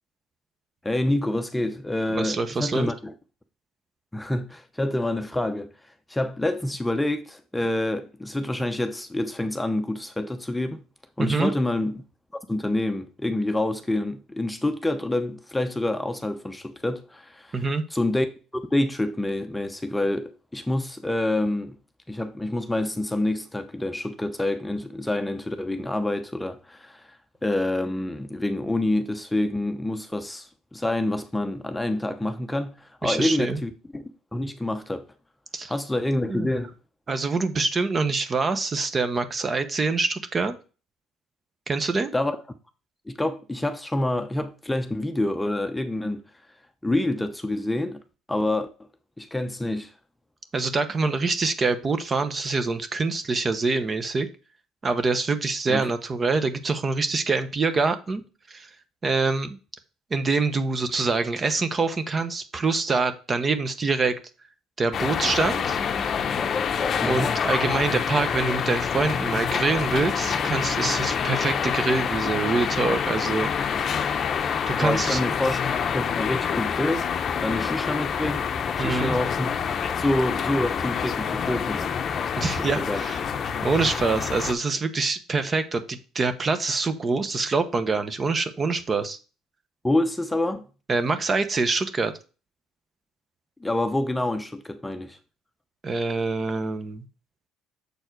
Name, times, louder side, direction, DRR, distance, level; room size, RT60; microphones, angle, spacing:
voice 1, 0.8-3.1 4.1-5.7 6.1-10.8 11.2-12.0 12.5-17.6 17.9-18.3 18.5-21.8 22.1-27.2 27.4-35.0 35.7-36.7 42.1-42.4 43.1-46.2 46.8-48.0 48.3-48.7 49.2-49.9 55.7-55.9 67.0-67.4 74.7-75.6 75.9-77.1 77.4-78.4 78.8-79.5 80.0-82.0 82.6-83.0 89.8-90.7 93.6-95.2, left 1 dB, 10° left, 0.7 m, -27 dB
voice 2, 2.1-2.9 11.2-11.5 17.5-17.8 33.0-33.6 35.5-35.7 36.2-36.5 37.1-40.6 41.7-42.1 50.5-54.3 54.8-58.2 58.5-58.7 59.0-59.6 60.1-64.1 64.8-65.8 67.0-73.5 74.7-75.2 78.8-79.2 82.4-83.2 83.6-89.2 90.9-92.1 95.8-97.0, right 3 dB, 30° right, 0.9 m, -25 dB
sound 1, 64.9-84.5, left 7 dB, 45° left, 0.7 m, -27 dB
6.8 x 4.3 x 4.6 m
supercardioid pair, 85°, 0 cm